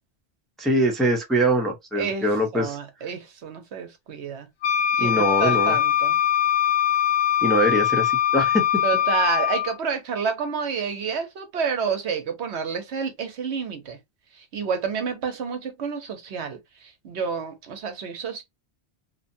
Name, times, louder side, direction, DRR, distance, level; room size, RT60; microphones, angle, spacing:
voice 1, 0.6-2.8 5.0-5.7 7.4-8.7, right 1 dB, ahead, 0.6 m, -23 dB
voice 2, 2.0-2.3 2.5-4.5 5.0-6.2 8.8-14.0 14.3-18.4, right 6 dB, 80° right, 1.0 m, -29 dB
Wind instrument woodwind instrument, 4.6-9.8, left 11 dB, 80° left, 0.9 m, -22 dB
2.8 x 2.2 x 2.6 m
omnidirectional pair, 1.1 m